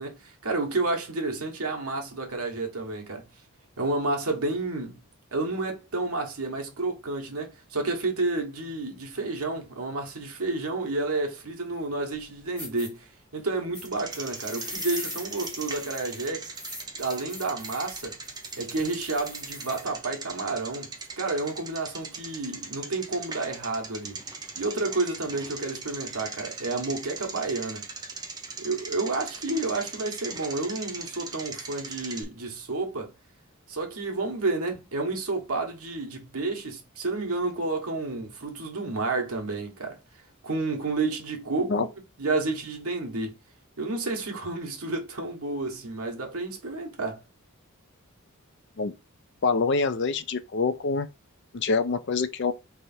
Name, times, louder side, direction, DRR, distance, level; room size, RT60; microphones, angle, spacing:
voice 1, 0.0-3.3 3.8-5.0 5.3-16.4 17.0-18.1 18.6-24.2 24.5-27.8 28.6-33.1 33.7-40.0 40.4-41.9 42.2-43.3 43.8-47.2, right 3 dB, 85° right, 1.4 m, -30 dB
sound 1, 12.2-12.3 12.6-12.9 13.7-19.9, left 1 dB, 5° left, 1.6 m, -41 dB
Bicycle, 13.8-32.2, right 4 dB, 20° right, 0.7 m, -40 dB
voice 2, 49.4-51.1 51.5-52.5, left 4 dB, 50° left, 0.5 m, -25 dB
3.4 x 3.3 x 4.3 m
head